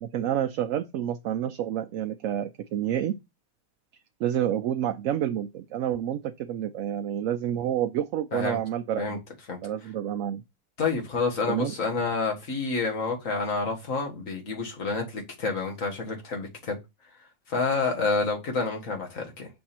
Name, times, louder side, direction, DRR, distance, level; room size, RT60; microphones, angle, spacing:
voice 1, 0.0-3.2 4.2-9.2 9.6-10.4 11.5-11.7, right 10 dB, 75° right, 1.0 m, -29 dB
voice 2, 10.8-16.8 17.5-19.5, left 4 dB, 75° left, 2.1 m, -28 dB
6.6 x 3.5 x 4.3 m
omnidirectional pair, 1.4 m